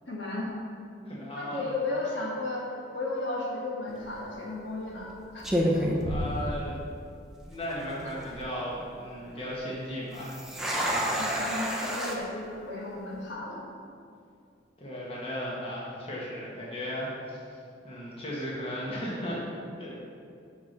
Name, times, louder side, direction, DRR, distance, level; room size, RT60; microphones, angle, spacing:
voice 1, 0.1-0.5 1.4-2.6 2.9-5.9 11.1-13.6, left 2 dB, 65° left, -4 dB, 1.8 m, -34 dB
voice 2, 1.0-1.6 6.0-6.8 7.4-10.4 10.8-11.1 14.8-17.4 17.8-19.4 19.8-19.9, equal, 30° left, -6 dB, 1.4 m, -36 dB
sound 1, 3.9-4.2 4.9-5.1 5.4-7.0 7.3-7.4 8.0-8.4 10.1-12.2, equal, ahead, 0.8 m, -29 dB
6.0 x 5.8 x 6.7 m, 2.4 s
head